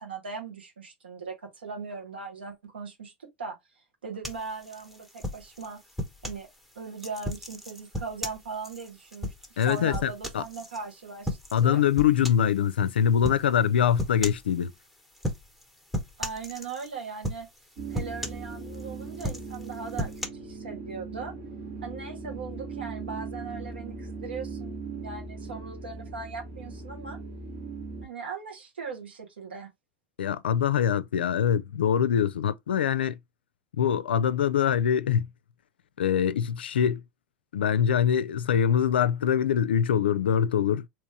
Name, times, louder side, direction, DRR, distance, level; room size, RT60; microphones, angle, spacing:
voice 1, 0.0-3.1 3.4-3.6 4.0-5.8 6.2-6.5 6.7-11.8 16.2-17.5 17.9-21.3 21.8-27.2 28.0-29.7, right 5 dB, 90° right, 1.3 m, -39 dB
sound 1, 4.2-6.4 7.0-10.8 11.2-11.7 12.0-12.5 13.2-13.5 14.0-14.5 15.2-15.6 15.9-16.9 17.2-17.6 17.9-18.8 19.1-20.3, equal, 5° right, 1.0 m, -35 dB
voice 2, 9.6-10.4 11.5-14.7 30.2-33.2 33.8-35.3 36.0-37.0 37.5-40.9, left 8 dB, 85° left, 0.4 m, -24 dB
sound 2, 17.8-28.1, right 4 dB, 65° right, 1.5 m, -39 dB
3.4 x 2.9 x 2.8 m
hypercardioid pair, 90°, 5 cm